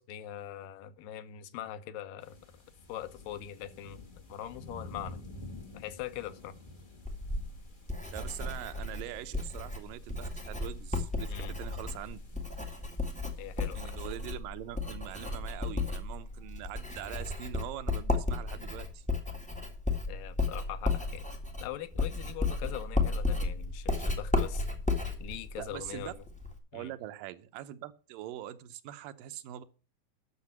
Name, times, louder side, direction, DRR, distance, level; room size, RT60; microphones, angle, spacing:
voice 1, 0.0-2.4 2.9-4.0 4.3-5.2 5.7-6.5 11.3-11.6 13.4-14.0 20.1-21.3 21.6-24.7 25.2-26.2 26.7-26.9, left 11 dB, 85° left, 2.6 m, -42 dB
sound 1, 2.2-14.2, left 2 dB, 25° left, 1.2 m, -51 dB
Writing, 7.0-26.6, left 3 dB, 5° left, 0.5 m, -34 dB
voice 2, 8.1-12.2 13.8-19.0 25.6-26.1 26.7-29.6, right 13 dB, 90° right, 2.5 m, -43 dB
10.0 x 6.6 x 7.1 m
omnidirectional pair, 3.8 m